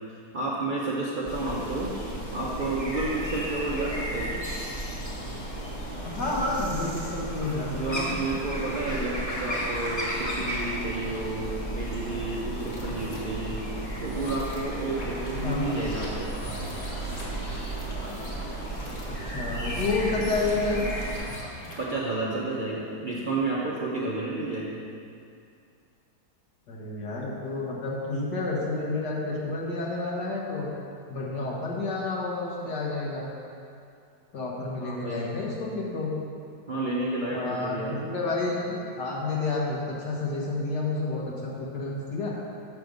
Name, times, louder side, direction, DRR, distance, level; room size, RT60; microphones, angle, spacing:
voice 1, 0.3-2.0 2.3-4.4 7.7-13.6 14.0-16.3 21.8-24.8 34.8-35.3 36.7-38.0, right 2 dB, 45° right, -6 dB, 0.6 m, -31 dB
sound 1, 1.2-21.2, right 1 dB, 20° left, 1.2 m, -34 dB
voice 2, 6.0-8.2 15.4-15.8 19.1-20.9 26.7-30.7 31.1-33.3 34.3-36.1 37.3-38.7 39.0-42.3, left 3 dB, 75° left, -3 dB, 1.9 m, -30 dB
sound 2, 12.5-13.2 13.9-21.9, equal, 45° left, 1.8 m, -41 dB
6.7 x 6.3 x 5.2 m, 2.5 s
omnidirectional pair, 1.8 m